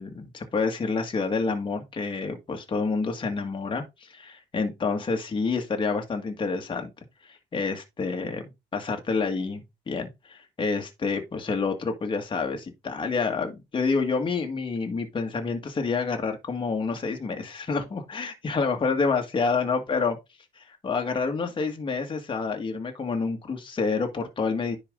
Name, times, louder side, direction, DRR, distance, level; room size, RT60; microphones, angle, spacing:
voice 1, 0.0-6.9 7.2-8.4 8.7-20.2 20.6-24.8, left 4 dB, 30° left, 1.9 m, -28 dB
10.0 x 4.8 x 3.8 m
cardioid pair, 110°, 17 cm